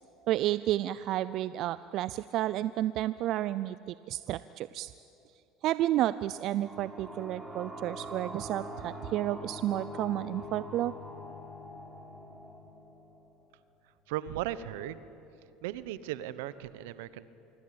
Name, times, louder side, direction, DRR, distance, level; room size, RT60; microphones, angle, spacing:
voice 1, 0.3-4.9 5.6-10.9, right 14 dB, 60° right, 15 dB, 0.5 m, -31 dB
sound 1, 6.0-13.5, left 1 dB, 10° right, 4.0 m, -44 dB
voice 2, 14.1-15.0 15.6-17.3, right 13 dB, 80° right, 15 dB, 1.0 m, -37 dB
25.5 x 23.5 x 8.8 m, 2.8 s
supercardioid pair, 90°, 0 cm